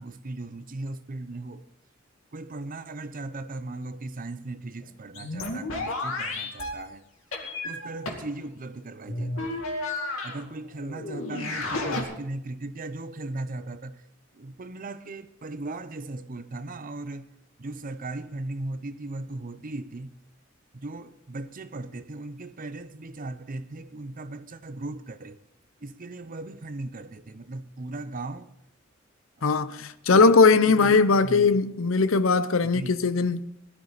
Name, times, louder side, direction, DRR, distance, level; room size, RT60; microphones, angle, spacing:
voice 1, 0.0-1.6 2.3-7.0 7.6-9.6 10.2-14.0 14.4-17.2 17.6-20.1 20.8-25.4 25.8-28.5 30.8-31.0 31.2-31.5 32.7-32.9, right 2 dB, 40° right, 0.7 m, -37 dB
sound 1, 4.8-4.9 5.1-6.8 7.3-8.3 9.1-10.4 10.7-12.0, left 2 dB, 90° left, 2.4 m, -32 dB
voice 2, 29.4-33.5, left 4 dB, 75° left, 0.7 m, -20 dB
17.0 x 12.5 x 4.1 m
head